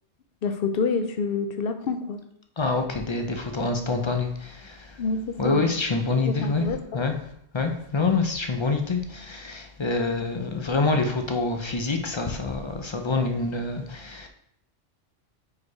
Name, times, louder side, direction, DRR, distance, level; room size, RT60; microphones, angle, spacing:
voice 1, 0.4-2.2 5.0-5.6 6.3-6.8, left 4 dB, 60° left, 0.8 m, -27 dB
voice 2, 2.6-5.0 5.4-14.3, left 3 dB, 40° left, 0.4 m, -26 dB
4.9 x 4.5 x 4.7 m
omnidirectional pair, 1.2 m